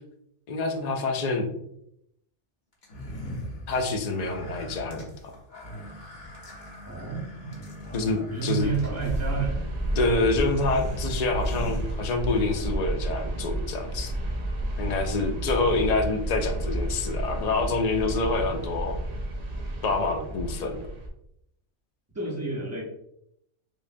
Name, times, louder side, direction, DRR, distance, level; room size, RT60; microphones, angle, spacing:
voice 1, 0.5-1.5 3.7-5.3 7.9-8.7 9.9-14.1 14.8-19.0 19.8-20.8, left 3 dB, 70° left, 4 dB, 0.4 m, -27 dB
sound 1, 2.8-12.5, equal, 40° left, 1.0 m, -40 dB
voice 2, 6.9-7.5 8.3-9.7 22.1-22.8, right 5 dB, 15° right, -2 dB, 0.7 m, -30 dB
sound 2, 8.6-21.1, right 1 dB, 55° right, 0.4 m, -31 dB
5.0 x 2.1 x 2.5 m, 0.75 s
omnidirectional pair, 1.3 m